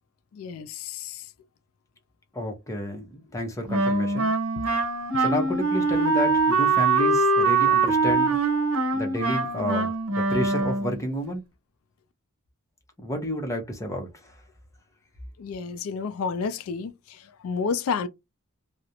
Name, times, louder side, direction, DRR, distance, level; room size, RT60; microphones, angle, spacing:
voice 1, 0.3-1.3 15.4-18.1, left 5 dB, 85° left, 0.3 m, -31 dB
voice 2, 2.3-4.3 5.2-8.4 8.9-11.4 13.0-14.3, equal, 15° left, 0.7 m, -30 dB
Wind instrument woodwind instrument, 3.7-11.0, right 3 dB, 85° right, 0.7 m, -23 dB
2.4 x 2.0 x 2.7 m
head